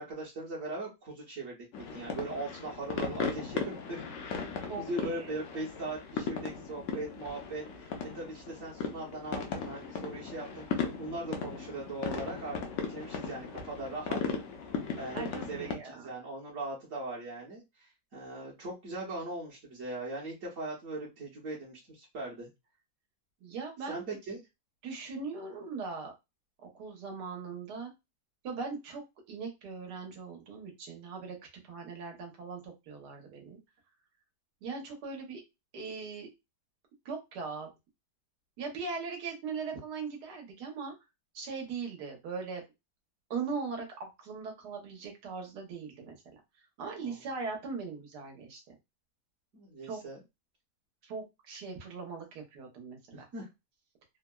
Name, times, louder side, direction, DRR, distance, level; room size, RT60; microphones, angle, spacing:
voice 1, 0.0-4.5 4.8-14.2 15.0-22.5 23.9-24.4 47.0-47.2 49.5-50.2 53.1-53.5, right 2 dB, 55° right, -3 dB, 1.1 m, -40 dB
sound 1, 1.7-15.7, left 6 dB, 65° left, 0.8 m, -37 dB
voice 2, 4.6-5.3 15.1-16.1 23.4-24.0 24.8-26.1 26.6-27.9 28.4-29.0 29.3-31.4 31.7-33.6 34.6-35.4 35.7-36.3 37.0-37.7 38.6-40.9 41.3-42.6 43.3-46.2 46.8-48.6 49.8-50.0 51.0-53.3, right 4 dB, 75° right, 2 dB, 1.4 m, -39 dB
3.5 x 2.0 x 2.2 m, 0.23 s
omnidirectional pair, 1.8 m